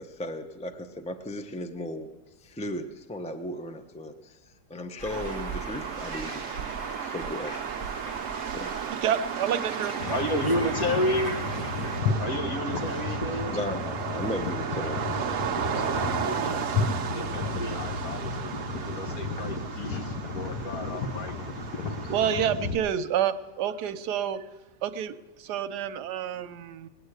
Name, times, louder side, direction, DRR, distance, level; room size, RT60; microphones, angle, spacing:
voice 1, 0.0-2.1 2.4-4.4 4.7-6.5 7.0-7.6 8.5-8.7 13.5-15.3, left 1 dB, 10° left, 6 dB, 0.4 m, -36 dB
sound 1, 5.0-12.0, right 1 dB, 35° left, 1.3 m, -40 dB
sound 2, 5.1-22.4, right 8 dB, 60° right, 1.0 m, -34 dB
voice 2, 8.9-10.2 22.1-24.5 24.8-26.9, right 9 dB, 85° right, 11 dB, 1.3 m, -29 dB
sound 3, 10.0-22.8, left 4 dB, 85° left, 1.7 m, -33 dB
voice 3, 10.1-11.4 11.9-13.6 15.7-16.7 17.0-21.4, left 1 dB, 65° left, 2 dB, 1.9 m, -32 dB
20.0 x 8.7 x 8.1 m, 1.1 s
omnidirectional pair, 1.7 m